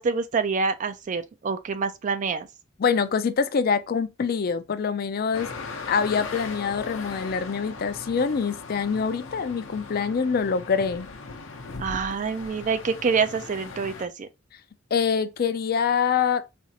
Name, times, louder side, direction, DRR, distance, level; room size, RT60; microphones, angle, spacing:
voice 1, 0.0-2.5 11.8-14.3, right 5 dB, 40° right, 0.4 m, -26 dB
voice 2, 2.8-5.5 5.9-11.1 14.9-16.5, left 6 dB, 50° left, 0.4 m, -25 dB
sound 1, 5.3-14.1, left 4 dB, 80° left, 0.7 m, -38 dB
4.2 x 2.4 x 2.7 m
head